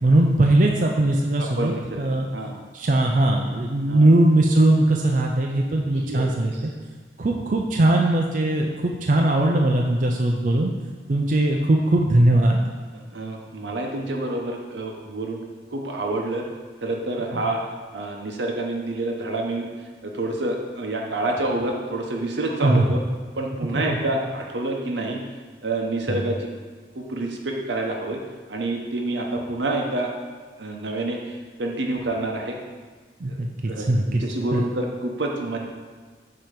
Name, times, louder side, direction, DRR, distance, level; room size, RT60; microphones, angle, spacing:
voice 1, 0.0-2.3 2.7-6.5 7.2-10.7 11.1-12.6 17.3-17.5 22.6-23.0 23.7-24.0 26.1-26.2 33.2-34.2 34.5-34.6, right 1 dB, 45° right, 1 dB, 0.4 m, -20 dB
voice 2, 1.4-2.6 3.9-4.0 6.0-6.6 12.9-16.4 16.8-17.6 17.9-19.7 20.0-23.0 23.3-25.2 25.6-26.5 26.9-28.2 28.5-30.1 30.6-32.6 33.3-33.4 33.6-35.7, right 2 dB, 85° right, 1 dB, 0.9 m, -28 dB
7.5 x 2.9 x 5.1 m, 1.5 s
head